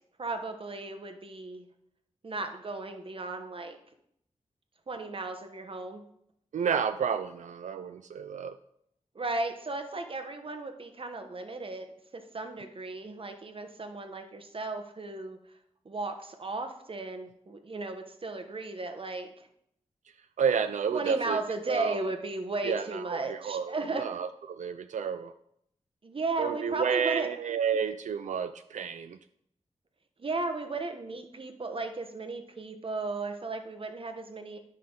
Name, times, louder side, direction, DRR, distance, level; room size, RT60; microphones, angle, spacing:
voice 1, 0.2-1.6 2.2-3.8 4.9-6.0 9.1-15.4 15.8-19.5 20.9-24.0 26.0-27.3 30.2-34.6, right 3 dB, 45° right, 6 dB, 1.0 m, -35 dB
voice 2, 6.5-8.6 20.4-21.4 21.7-22.0 22.6-25.3 26.4-29.2, right 7 dB, 90° right, 9 dB, 0.4 m, -31 dB
10.5 x 5.6 x 3.8 m, 0.73 s
wide cardioid pair, 95°, 12 cm